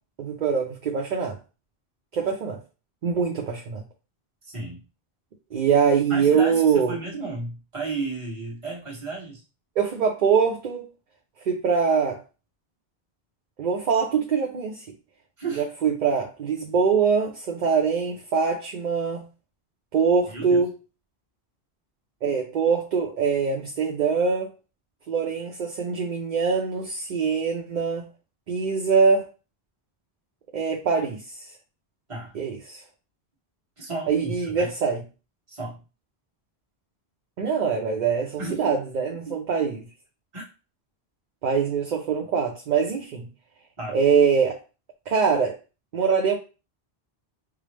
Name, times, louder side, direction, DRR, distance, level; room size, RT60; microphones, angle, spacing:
voice 1, 0.2-1.4 2.1-2.6 3.0-3.8 5.5-7.0 9.8-10.9 11.4-12.2 13.6-14.8 15.6-19.2 19.9-20.7 22.2-24.5 25.1-28.1 28.5-29.3 30.5-31.2 32.3-32.8 34.1-35.0 37.4-39.8 41.4-43.3 43.9-44.6 45.1-45.6 45.9-46.4, right 6 dB, 55° right, 0.6 m, -23 dB
voice 2, 4.4-4.8 6.1-9.4 15.4-15.7 20.3-20.6 32.1-32.3 33.8-34.7 35.5-35.8 38.4-38.8 39.2-39.4 40.3-40.5 43.8-44.0, right 3 dB, 30° right, 1.3 m, -33 dB
4.7 x 2.0 x 3.2 m
omnidirectional pair, 1.1 m